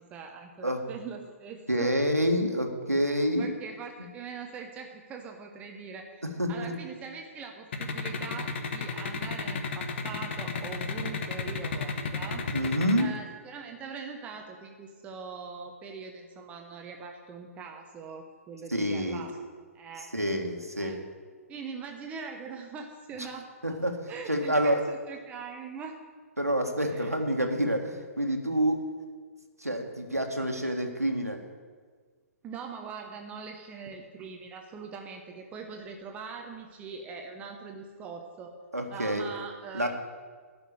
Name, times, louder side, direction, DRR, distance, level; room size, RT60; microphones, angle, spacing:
voice 1, 0.0-1.9 3.4-6.2 6.5-12.4 13.0-19.4 19.7-20.1 20.8-21.0 21.5-23.5 24.1-26.0 26.9-27.1 32.4-38.5 38.9-39.9, right 5 dB, 15° right, 3 dB, 0.9 m, -42 dB
voice 2, 1.7-3.5 6.4-6.7 12.5-13.1 18.7-19.2 20.1-21.0 23.6-24.0 24.3-24.8 26.4-28.9 29.6-31.4 38.7-39.3 39.7-39.9, equal, 85° right, 3 dB, 1.6 m, -27 dB
sound 1, 7.7-13.0, left 5 dB, 50° left, 1.2 m, -32 dB
12.0 x 6.2 x 8.9 m, 1.6 s
figure-of-eight pair, 125°, 8 cm